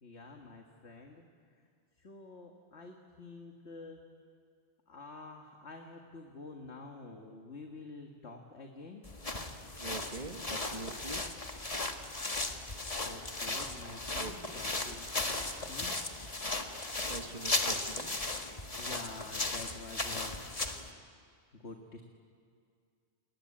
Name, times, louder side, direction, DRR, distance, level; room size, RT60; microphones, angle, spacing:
voice 1, 0.0-1.2 1.5-1.7 2.0-4.0 4.9-9.0 13.0-15.9 18.7-20.4 21.5-22.0, left 3 dB, 85° left, 2 dB, 2.1 m, -48 dB
sound 1, 9.0-20.9, left 2 dB, 35° left, 1.7 m, -36 dB
voice 2, 9.8-11.2 11.7-11.8 14.1-14.3 17.1-18.1, right 3 dB, 35° right, 6 dB, 1.6 m, -43 dB
29.0 x 21.0 x 8.8 m, 2.3 s
omnidirectional pair, 1.1 m